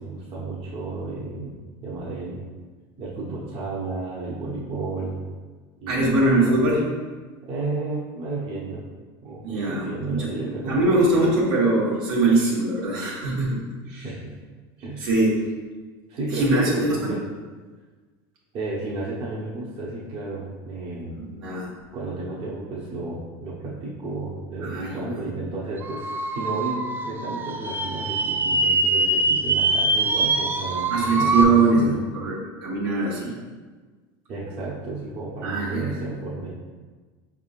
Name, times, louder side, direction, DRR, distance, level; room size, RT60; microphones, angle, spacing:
voice 1, 0.0-1.5 1.8-2.4 3.0-5.2 5.8-6.6 7.4-8.8 9.2-11.2 14.0-14.4 14.8-15.1 16.1-16.8 17.1-17.2 18.5-21.2 21.9-30.9 31.2-32.0 34.3-36.5, right 3 dB, 50° right, -6 dB, 0.9 m, -32 dB
voice 2, 5.9-6.8 9.4-10.3 10.7-13.6 13.9-14.1 15.0-15.3 16.3-17.1 21.2-21.7 24.6-25.0 30.9-32.4 32.6-33.3 35.4-35.9, right 2 dB, 85° right, -5 dB, 1.4 m, -22 dB
sound 1, 25.8-31.4, right 2 dB, 15° right, 0.3 m, -23 dB
5.2 x 3.6 x 2.5 m, 1.4 s
supercardioid pair, 115°, 12 cm